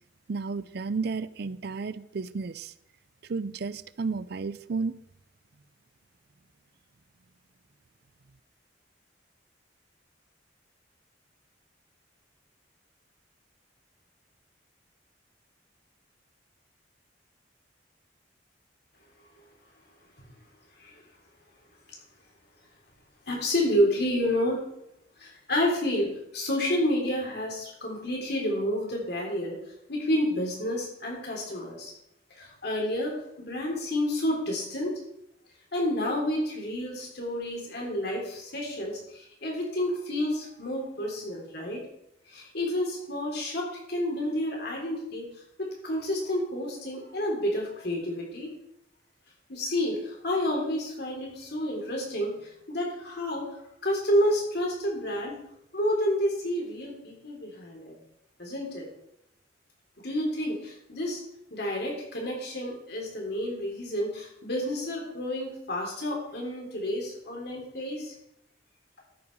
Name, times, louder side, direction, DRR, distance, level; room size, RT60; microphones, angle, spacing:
voice 1, 0.3-2.7 3.3-4.9, right 4 dB, 60° right, 16 dB, 0.5 m, -32 dB
voice 2, 23.3-24.6 25.2-26.1 26.3-29.6 29.9-31.9 32.4-34.9 35.7-41.9 42.3-45.3 45.6-48.5 49.5-53.5 53.8-55.4 55.7-57.9 58.4-58.9 60.0-61.2 61.5-68.1, left 1 dB, 60° left, -1 dB, 3.7 m, -29 dB
13.0 x 5.7 x 5.4 m, 0.79 s
head